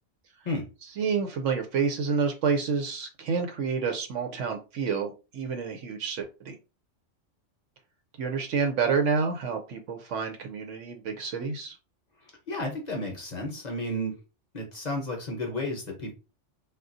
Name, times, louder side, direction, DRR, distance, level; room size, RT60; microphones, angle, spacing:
voice 1, 1.0-6.6 8.2-11.8, right 5 dB, 80° right, 4 dB, 0.9 m, -29 dB
voice 2, 12.5-14.1 14.5-16.1, left 1 dB, 40° left, 1 dB, 0.7 m, -32 dB
3.6 x 2.3 x 2.5 m, 0.30 s
omnidirectional pair, 1.3 m